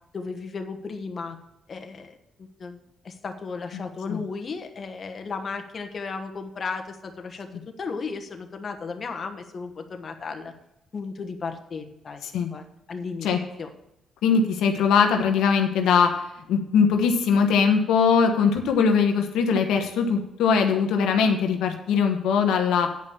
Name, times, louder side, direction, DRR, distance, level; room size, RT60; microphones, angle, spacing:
voice 1, 0.1-1.4 1.7-2.8 3.0-7.5 7.8-10.5 10.9-12.2 12.5-13.3 13.6-13.7, left 4 dB, 40° left, 5 dB, 1.3 m, -35 dB
voice 2, 14.2-16.1 16.5-22.9, left 6 dB, 85° left, 4 dB, 1.2 m, -21 dB
9.2 x 5.5 x 7.1 m, 0.84 s
cardioid pair, 90°, 0 cm